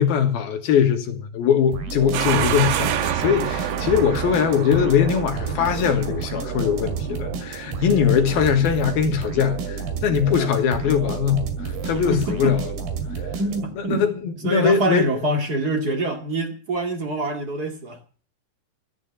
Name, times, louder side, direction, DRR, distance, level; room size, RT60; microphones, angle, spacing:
voice 1, 0.0-12.6 13.9-15.1, left 8 dB, 65° left, 3.1 m, -21 dB
sound 1, 1.7-13.9, right 5 dB, 65° right, 4.1 m, -30 dB
sound 2, 2.1-12.9, right 11 dB, 90° right, 3.5 m, -31 dB
voice 2, 11.9-12.5 13.4-14.0 14.4-18.0, right 1 dB, 35° right, 1.6 m, -25 dB
14.5 x 8.8 x 8.4 m
omnidirectional pair, 5.1 m